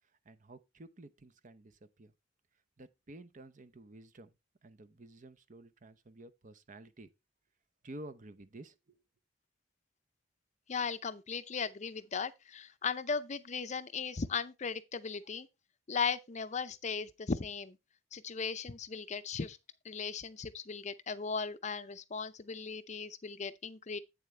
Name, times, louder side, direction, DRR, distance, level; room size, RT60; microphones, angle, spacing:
voice 1, 0.2-2.1 2.8-4.3 4.6-7.1 7.8-9.0, right 1 dB, 40° right, 0.7 m, -52 dB
voice 2, 10.7-15.5 15.9-17.8 18.1-19.6 19.8-24.0, left 5 dB, 40° left, 0.6 m, -37 dB
8.5 x 7.3 x 3.2 m
head